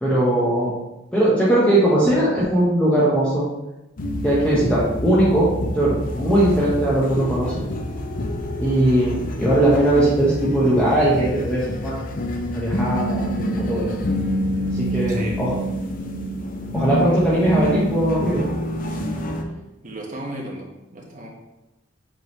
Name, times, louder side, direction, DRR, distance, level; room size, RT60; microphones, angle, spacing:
voice 1, 0.0-0.7 1.1-3.4 4.2-5.5 5.7-7.6 8.6-12.0 12.5-13.3 13.6-13.9 14.7-15.5 16.7-18.4, right 1 dB, 5° left, -8 dB, 1.1 m, -19 dB
sound 1, 4.0-19.4, equal, 45° left, 0.6 m, -27 dB
voice 2, 15.1-15.6 19.8-20.7 20.9-21.3, right 1 dB, 40° right, -2 dB, 1.3 m, -35 dB
7.9 x 3.9 x 3.1 m, 0.98 s
head